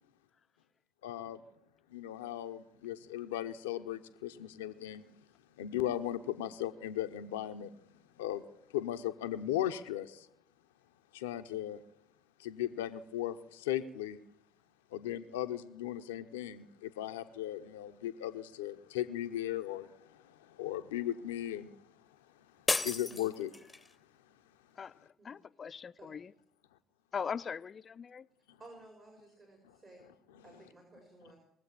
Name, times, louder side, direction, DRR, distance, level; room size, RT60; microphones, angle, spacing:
voice 1, 1.0-1.4 1.9-5.0 5.6-7.7 8.2-8.4 8.7-10.3 11.1-11.8 12.4-14.2 14.9-21.9 22.4-23.5 28.5-28.6 30.3-30.4, left 12 dB, 85° left, 0.7 m, -37 dB
sound 1, 22.7-23.9, left 3 dB, 20° left, 0.9 m, -34 dB
voice 2, 24.8-26.3 27.1-28.3, left 6 dB, 45° left, 0.5 m, -40 dB
voice 3, 28.6-31.4, right 2 dB, 45° right, 4.7 m, -56 dB
20.5 x 7.7 x 7.4 m
hypercardioid pair, 55°, 0 cm